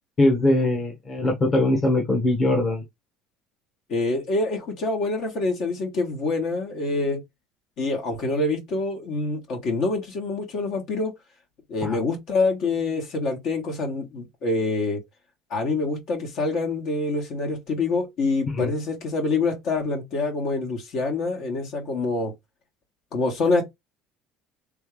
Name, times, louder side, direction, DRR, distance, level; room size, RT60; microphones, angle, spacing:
voice 1, 0.2-2.8 11.8-12.0 18.6-18.7, left 1 dB, 25° left, 1.3 m, -21 dB
voice 2, 3.9-7.2 7.8-11.1 11.7-15.0 15.5-22.3 23.1-23.6, left 3 dB, 55° left, 1.9 m, -26 dB
3.6 x 3.4 x 3.4 m
cardioid pair, 140°, 0 cm